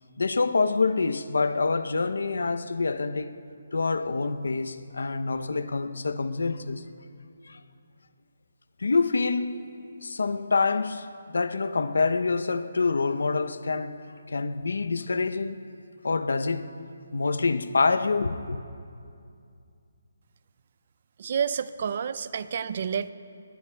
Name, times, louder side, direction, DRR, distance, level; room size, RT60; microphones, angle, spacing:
voice 1, 0.2-3.3 3.7-6.8 7.5-7.6 8.8-9.6 10.0-14.0 14.3-15.6 16.0-16.7 17.1-18.6, left 4 dB, 90° left, 0.6 m, -26 dB
voice 2, 21.2-23.1, right 7 dB, 40° right, 0.4 m, -29 dB
20.5 x 20.0 x 2.3 m
hypercardioid pair, 175°, 0 cm